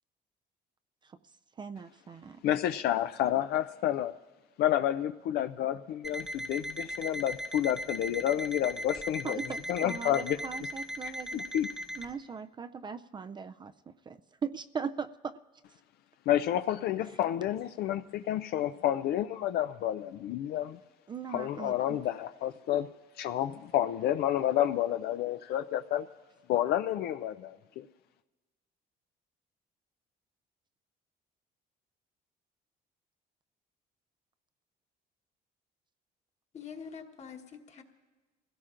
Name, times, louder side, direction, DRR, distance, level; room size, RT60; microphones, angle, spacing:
voice 1, 1.6-2.4 9.2-11.4 12.0-15.3 21.1-22.0, right 6 dB, 25° right, 10 dB, 0.3 m, -39 dB
voice 2, 2.4-4.1 4.6-9.4 9.7-10.4 11.3-11.7 16.3-20.8 21.3-22.9 23.2-26.1 26.5-27.9, left 12 dB, 70° left, 9 dB, 0.4 m, -30 dB
Alarm, 6.0-12.1, equal, ahead, 0.9 m, -38 dB
voice 3, 36.5-37.8, left 6 dB, 40° left, 4 dB, 1.3 m, -45 dB
24.0 x 16.5 x 2.5 m, 1.2 s
cardioid pair, 110°, 17 cm